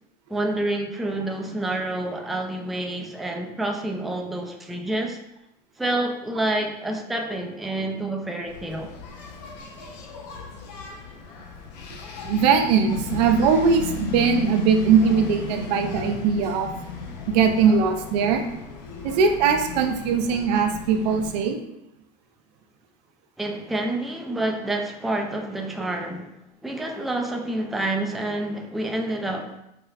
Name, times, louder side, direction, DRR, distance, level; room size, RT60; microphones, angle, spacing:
voice 1, 0.3-5.2 5.8-8.9 23.4-26.3 26.6-29.6, right 1 dB, ahead, 2 dB, 0.3 m, -28 dB
Engine, 8.4-21.4, left 4 dB, 85° left, 0.6 m, -36 dB
voice 2, 12.2-16.7 17.3-18.4 19.0-21.6, right 6 dB, 75° right, 5 dB, 0.5 m, -20 dB
4.8 x 2.1 x 2.3 m, 0.83 s
hypercardioid pair, 95°, 21 cm